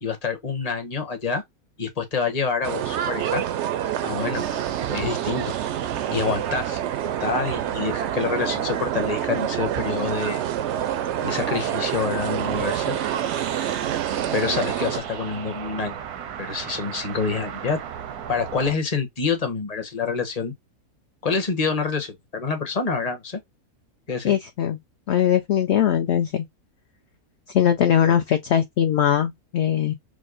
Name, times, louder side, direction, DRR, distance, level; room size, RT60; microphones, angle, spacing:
voice 1, 0.0-1.4 1.8-3.4 4.0-4.6 4.9-5.5 6.1-6.8 7.2-10.4 11.2-12.9 14.3-16.0 16.4-17.8 18.3-20.5 21.2-23.4 24.1-24.3, left 5 dB, 30° left, 0.9 m, -27 dB
sound 1, 2.6-15.0, right 11 dB, 70° right, 0.7 m, -27 dB
sound 2, 4.3-18.8, right 9 dB, 90° right, 1.2 m, -35 dB
voice 2, 24.2-24.8 25.1-26.4 27.5-29.9, left 9 dB, 65° left, 0.7 m, -21 dB
4.8 x 2.1 x 2.5 m
omnidirectional pair, 1.6 m